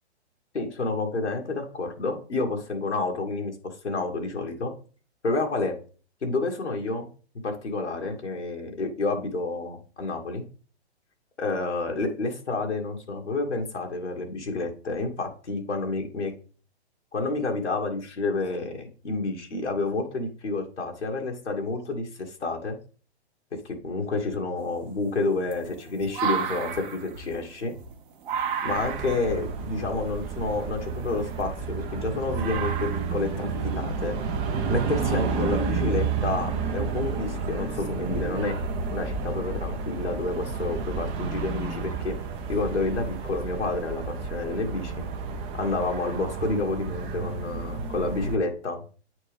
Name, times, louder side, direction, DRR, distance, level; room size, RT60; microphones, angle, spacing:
voice 1, 0.5-4.7 5.2-5.7 6.2-7.1 7.4-10.4 11.4-16.3 17.1-22.8 23.6-27.7 28.6-34.1 34.7-38.5 38.9-42.2 42.5-45.1 45.5-48.8, left 3 dB, 90° left, 1 dB, 1.5 m, -29 dB
sound 1, 24.6-31.9 32.3-33.3 34.6-34.7 36.0-36.1 38.7-39.0 39.4-39.8 40.4-41.0 41.6-41.7 42.7-42.8 43.2-43.3, right 7 dB, 50° right, 1.2 m, -35 dB
sound 2, 28.7-48.4, right 5 dB, 20° right, 0.5 m, -31 dB
9.1 x 4.4 x 3.3 m, 0.39 s
hypercardioid pair, 125°, 34 cm